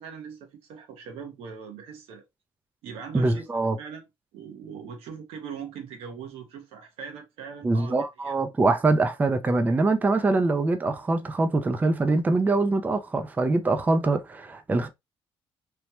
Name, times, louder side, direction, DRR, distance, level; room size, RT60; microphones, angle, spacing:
voice 1, 0.0-2.2 2.8-4.0 4.3-7.9 8.2-8.3, right 6 dB, 85° right, 0.9 m, -41 dB
voice 2, 3.1-3.8 7.6-14.9, right 3 dB, 15° right, 0.4 m, -23 dB
3.0 x 2.1 x 2.9 m
cardioid pair, 105°, 10 cm